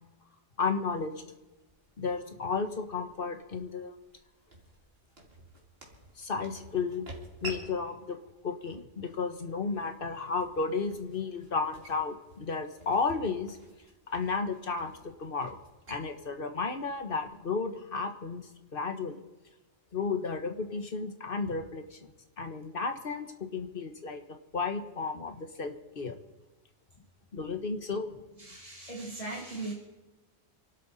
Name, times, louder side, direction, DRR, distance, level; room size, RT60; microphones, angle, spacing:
voice 1, 0.6-1.1 2.0-3.9 6.2-7.1 7.4-8.2 8.4-13.6 14.1-15.6 15.9-19.2 19.9-24.2 24.5-26.1 27.3-28.1, left 4 dB, 50° left, 6 dB, 1.5 m, -33 dB
sound 1, 1.4-17.5, right 1 dB, 60° right, 2.7 m, -51 dB
voice 2, 28.4-29.7, right 2 dB, 30° left, -2 dB, 2.2 m, -38 dB
27.0 x 12.5 x 4.2 m, 1.1 s
omnidirectional pair, 1.2 m